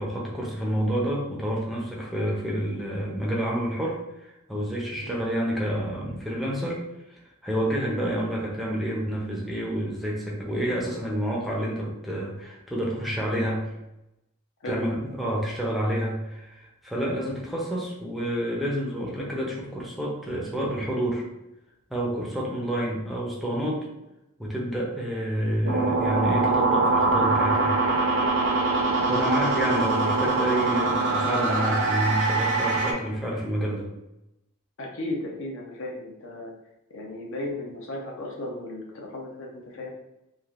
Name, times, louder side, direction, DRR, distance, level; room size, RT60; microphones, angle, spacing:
voice 1, 0.0-6.8 7.1-13.7 14.6-21.2 21.9-23.9 24.4-27.7 29.1-33.9, equal, ahead, -4 dB, 0.5 m, -29 dB
sound 1, 25.6-32.9, right 3 dB, 55° right, 0.6 m, -23 dB
voice 2, 34.8-36.5 36.9-39.9, left 1 dB, 65° left, -1 dB, 0.6 m, -35 dB
3.3 x 2.5 x 2.4 m, 0.91 s
head